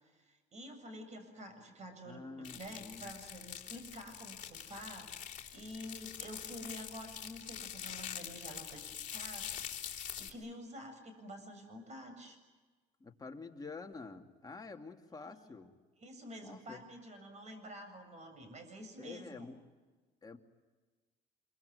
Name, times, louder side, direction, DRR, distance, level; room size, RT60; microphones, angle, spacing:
voice 1, 0.0-8.8 9.1-12.4 15.2-15.5 16.0-19.5, equal, 40° right, 8 dB, 7.4 m, -49 dB
voice 2, 2.1-3.2 13.0-15.7 16.4-16.8 19.0-19.6 20.2-20.4, left 4 dB, 20° left, 3 dB, 2.5 m, -48 dB
sound 1, 2.4-10.3, left 9 dB, 45° left, 3.5 m, -45 dB
26.5 x 24.0 x 9.4 m, 1.4 s
cardioid pair, 110°, 17 cm